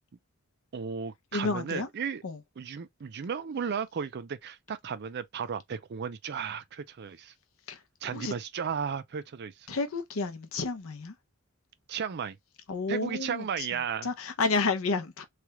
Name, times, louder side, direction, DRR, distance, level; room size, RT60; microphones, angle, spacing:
voice 1, 0.7-2.2 2.6-7.3 8.0-9.7 11.9-12.4 12.9-14.1, right 6 dB, 50° right, 0.4 m, -34 dB
voice 2, 1.3-1.9 2.2-2.4 7.7-7.8 8.1-8.3 9.7-11.1 12.7-13.7 14.0-15.2, left 3 dB, 70° left, 0.7 m, -30 dB
3.3 x 2.3 x 2.9 m
head